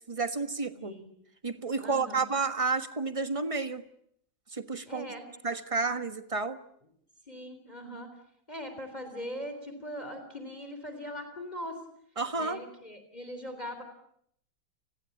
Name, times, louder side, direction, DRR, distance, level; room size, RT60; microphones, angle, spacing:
voice 1, 0.1-1.0 1.4-3.8 4.5-5.1 5.4-6.6 12.2-12.6, right 4 dB, 20° right, 10 dB, 1.2 m, -31 dB
voice 2, 1.8-2.3 4.9-5.2 7.3-8.1 8.5-11.8 12.3-13.8, equal, 20° left, 7 dB, 3.8 m, -40 dB
30.0 x 20.5 x 8.6 m, 0.71 s
omnidirectional pair, 2.1 m